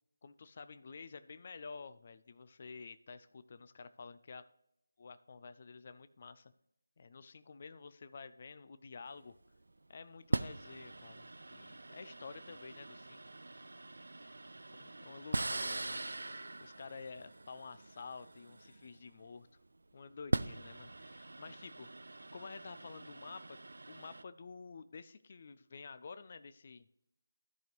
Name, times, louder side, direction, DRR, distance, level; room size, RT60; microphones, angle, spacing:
voice 1, 0.2-4.5 5.0-6.5 7.0-9.4 9.9-13.2 14.2-14.3 14.8-16.0 16.6-19.5 19.9-21.9 22.3-23.6 23.9-26.9, left 4 dB, 40° left, 12 dB, 0.4 m, -50 dB
sound 1, 9.1-9.4 10.3-19.3 20.1-24.2, right 2 dB, 75° right, 0.3 m, -41 dB
13.5 x 5.2 x 3.0 m, 0.78 s
figure-of-eight pair, 165°, 0 cm